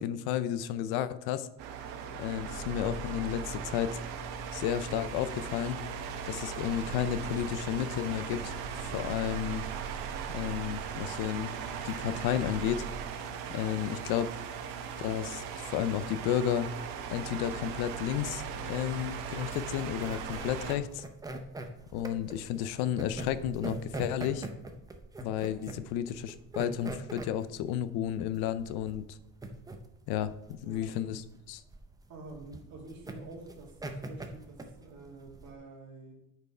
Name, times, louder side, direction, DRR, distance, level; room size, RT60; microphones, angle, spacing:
voice 1, 0.0-1.5 2.2-4.0 4.5-5.8 6.3-8.5 8.9-9.6 10.3-11.5 11.8-12.8 13.5-14.3 15.0-16.7 17.1-21.0 21.9-24.5 25.2-29.2 30.1-31.6, left 10 dB, 70° left, 14 dB, 0.6 m, -32 dB
sound 1, 1.6-20.8, right 6 dB, 75° right, 1.1 m, -39 dB
sound 2, 6.6-13.0, right 10 dB, 30° right, 0.9 m, -44 dB
sound 3, 19.4-35.5, right 2 dB, 10° right, 0.5 m, -43 dB
voice 2, 30.6-30.9 32.1-36.1, right 3 dB, 45° right, 0 dB, 2.2 m, -48 dB
8.1 x 4.6 x 4.9 m, 0.83 s
cardioid pair, 150°, 39 cm